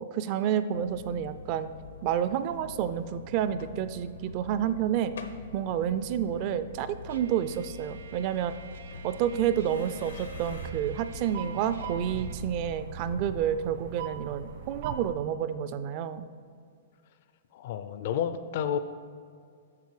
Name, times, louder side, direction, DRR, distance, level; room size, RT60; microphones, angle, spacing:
voice 1, 0.0-1.7 2.0-5.1 5.5-8.5 9.0-16.3, right 9 dB, 35° right, 13 dB, 0.4 m, -29 dB
sound 1, 0.7-12.7, left 5 dB, 90° left, 0.9 m, -45 dB
Trumpet, 7.1-12.4, right 7 dB, 85° right, 0.7 m, -51 dB
sound 2, 8.6-15.1, right 6 dB, 65° right, 1.3 m, -41 dB
voice 2, 17.5-18.8, left 9 dB, 50° left, 11 dB, 0.4 m, -30 dB
8.3 x 6.5 x 4.8 m, 2.2 s
hypercardioid pair, 155°, 0 cm